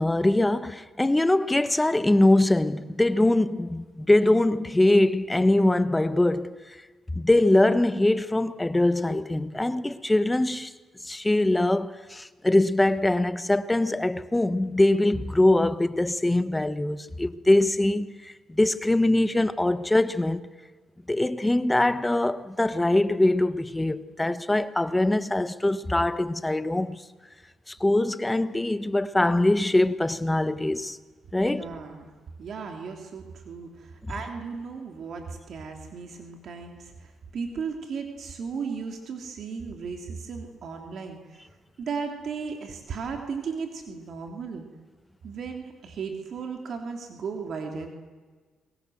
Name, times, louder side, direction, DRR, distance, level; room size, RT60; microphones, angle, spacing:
voice 1, 0.0-6.6 7.1-10.7 11.0-20.5 21.1-27.0 27.7-31.0 31.3-31.7, left 1 dB, 10° left, 1.3 m, -23 dB
voice 2, 31.4-32.1 32.4-41.5 41.8-44.7 45.2-47.9, right 5 dB, 60° right, 3.1 m, -36 dB
28.5 x 22.5 x 7.9 m
cardioid pair, 90°, 0 cm